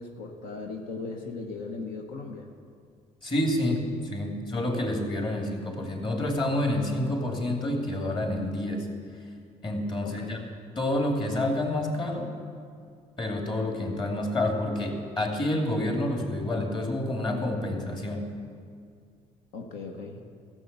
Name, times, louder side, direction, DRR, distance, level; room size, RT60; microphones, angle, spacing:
voice 1, 0.0-2.5 10.0-10.3 19.5-20.2, left 3 dB, 90° left, 2 dB, 1.0 m, -38 dB
voice 2, 3.2-8.9 9.6-10.4 10.8-12.3 13.2-18.4, left 1 dB, 35° left, 1 dB, 2.6 m, -28 dB
14.0 x 7.5 x 6.8 m, 2.2 s
cardioid pair, 85°, 14 cm